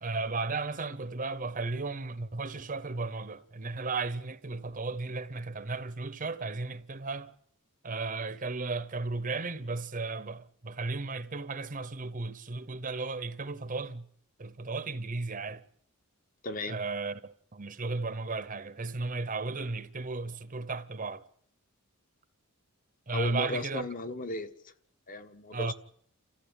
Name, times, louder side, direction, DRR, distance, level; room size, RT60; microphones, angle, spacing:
voice 1, 0.0-7.3 7.8-14.1 14.4-15.6 16.7-21.2 23.1-23.9 25.5-25.7, right 3 dB, 40° right, 0.9 m, -35 dB
voice 2, 16.4-16.8 23.1-24.5 25.1-25.7, left 2 dB, 40° left, 1.3 m, -35 dB
30.0 x 14.5 x 9.0 m
head